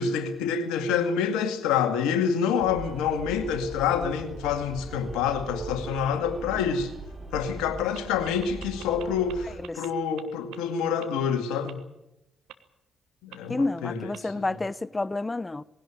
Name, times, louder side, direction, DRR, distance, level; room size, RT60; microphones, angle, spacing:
voice 1, 0.0-6.9 7.3-11.8 13.2-14.4, left 7 dB, 75° left, 2.1 m, -27 dB
sound 1, 2.6-9.6, right 2 dB, 35° right, 6.2 m, -40 dB
sound 2, 7.9-9.3 9.6-9.9 10.2-10.3 10.5-10.6 11.0-11.1 11.7-11.8 12.5-12.6 13.3-13.4 14.1-14.2, right 14 dB, 75° right, 1.3 m, -43 dB
voice 2, 13.5-15.6, left 2 dB, 25° left, 0.8 m, -29 dB
20.0 x 17.0 x 9.1 m
hypercardioid pair, 40°, 0 cm